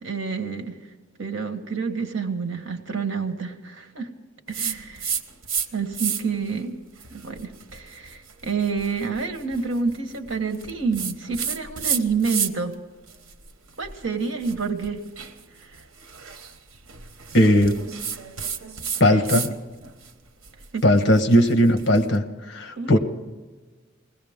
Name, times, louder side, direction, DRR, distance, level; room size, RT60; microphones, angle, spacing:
voice 1, 0.0-0.8 1.2-4.1 4.5-5.1 5.7-6.7 7.1-12.7 13.8-15.0 19.1-19.4 20.7-20.8 22.8-23.0, right 5 dB, 70° right, 5 dB, 1.5 m, -28 dB
sound 1, 4.5-5.7 5.9-6.4 7.0-12.7 13.1-19.5 19.8-22.0, right 7 dB, 85° right, 1.1 m, -32 dB
voice 2, 17.3-17.8 19.0-19.5 20.8-23.0, equal, 55° left, 7 dB, 1.2 m, -18 dB
21.0 x 16.5 x 3.6 m, 1.3 s
head